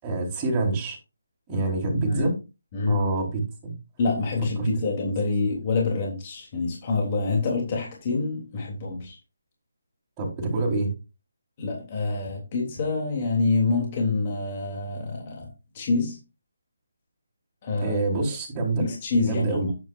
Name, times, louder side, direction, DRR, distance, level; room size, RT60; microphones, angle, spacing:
voice 1, 0.0-1.0 1.5-2.4 2.9-3.7 4.6-4.7 10.2-10.9 17.8-18.9 19.2-19.6, right 2 dB, 15° right, -5 dB, 4.6 m, -26 dB
voice 2, 4.0-9.2 11.6-15.5 15.7-16.2 17.6-18.0 18.8-19.7, left 3 dB, 25° left, -1 dB, 3.3 m, -26 dB
11.0 x 9.1 x 2.6 m, 0.28 s
hypercardioid pair, 165°, 0 cm